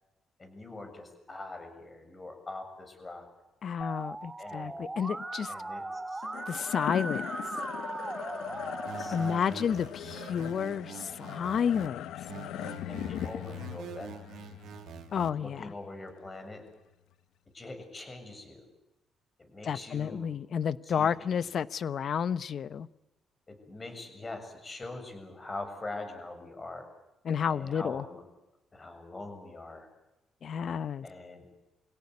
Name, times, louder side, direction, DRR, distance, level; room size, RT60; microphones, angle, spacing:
voice 1, 0.4-3.3 4.4-4.9 5.5-6.2 8.9-9.6 12.9-14.1 15.3-16.6 17.5-18.6 19.4-20.3 20.9-21.4 23.5-26.9 27.5-28.2 28.7-29.9 31.0-31.5, left 2 dB, 25° left, 6 dB, 7.2 m, -43 dB
voice 2, 3.6-5.5 6.5-7.3 9.1-12.1 15.1-15.7 19.6-22.9 27.2-28.0 30.4-31.1, left 7 dB, 55° left, 16 dB, 0.9 m, -31 dB
Musical instrument, 3.8-9.4, right 2 dB, 15° right, 1.8 m, -38 dB
sound 1, 6.2-16.7, left 11 dB, 85° left, 0.9 m, -40 dB
sound 2, 8.9-11.9 12.3-15.3, right 10 dB, 75° right, 1.2 m, -46 dB
25.5 x 17.0 x 9.8 m, 0.97 s
cardioid pair, 90°, 0 cm